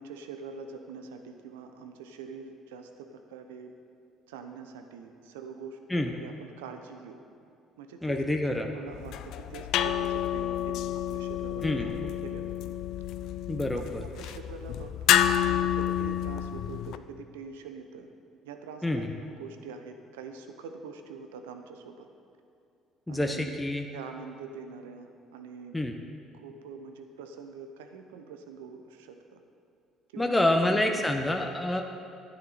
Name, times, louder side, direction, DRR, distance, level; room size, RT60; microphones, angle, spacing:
voice 1, 0.0-3.7 4.3-7.2 7.8-8.2 8.7-12.5 13.7-18.1 18.4-22.1 23.1-23.5 23.9-25.8 26.3-29.4 30.1-30.6 30.9-31.5, right 5 dB, 90° right, 6 dB, 0.8 m, -44 dB
voice 2, 8.0-8.7 11.6-11.9 13.5-14.0 18.8-19.1 23.1-23.9 25.7-25.9 30.2-31.8, left 1 dB, 10° left, 3 dB, 1.0 m, -27 dB
sound 1, 8.9-17.0, left 11 dB, 70° left, 0.4 m, -29 dB
12.0 x 9.8 x 4.1 m, 2.6 s
hypercardioid pair, 65°, 0 cm